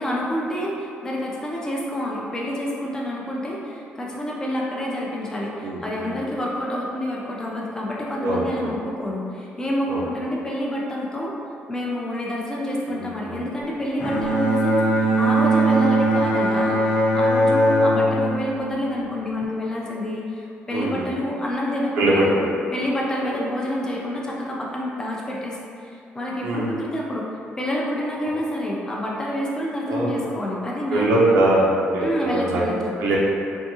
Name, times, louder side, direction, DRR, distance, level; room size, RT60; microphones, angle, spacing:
voice 1, 0.0-11.4 11.7-22.3 22.7-25.6 25.8-27.3 27.6-31.2 32.0-33.0, left 1 dB, 15° left, -3 dB, 0.4 m, -28 dB
voice 2, 5.6-6.1 8.2-8.7 9.9-10.0 12.9-13.4 20.7-21.1 22.0-22.5 23.2-23.3 26.4-26.8 29.9-30.3 30.9-32.7 33.0-33.2, right 1 dB, 80° right, -5 dB, 0.7 m, -22 dB
Bowed string instrument, 14.0-19.4, right 1 dB, 60° left, 0.7 m, -20 dB
3.5 x 2.6 x 2.7 m, 2.5 s
cardioid pair, 165°, 4 cm